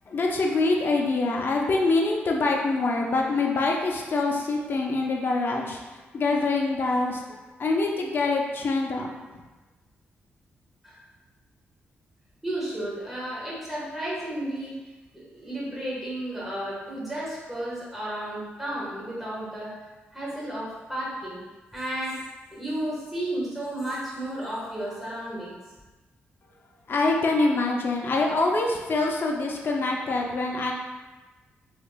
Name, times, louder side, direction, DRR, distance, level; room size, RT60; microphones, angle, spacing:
voice 1, 0.1-5.8 6.1-7.2 7.6-9.1 26.9-30.7, left 3 dB, 55° left, 0 dB, 0.6 m, -25 dB
voice 2, 12.4-19.7 20.1-21.4 21.7-25.6, right 1 dB, 5° right, -7 dB, 1.5 m, -33 dB
3.5 x 3.4 x 2.3 m, 1.2 s
cardioid pair, 75°, 4 cm